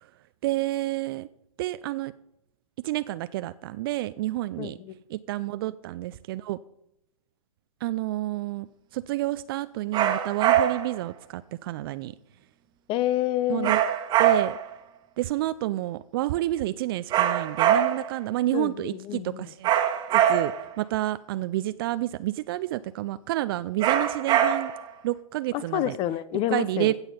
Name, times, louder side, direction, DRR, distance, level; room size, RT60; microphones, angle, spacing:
voice 1, 0.4-1.3 1.6-2.1 2.8-4.8 5.1-6.6 7.8-8.7 8.9-12.1 13.5-13.8 14.2-14.6 15.2-19.7 20.1-20.5 20.8-24.7 25.0-26.0 26.5-26.9, right 16 dB, 40° right, 14 dB, 0.4 m, -29 dB
voice 2, 4.6-4.9 12.9-13.7 18.5-19.5 25.5-26.9, left 13 dB, 30° left, 18 dB, 0.7 m, -28 dB
sound 1, 9.9-11.0 13.6-14.7 17.1-18.2 19.6-20.7 23.8-24.9, right 10 dB, 25° right, 1.4 m, -23 dB
16.0 x 7.2 x 5.5 m, 0.82 s
hypercardioid pair, 120°, 18 cm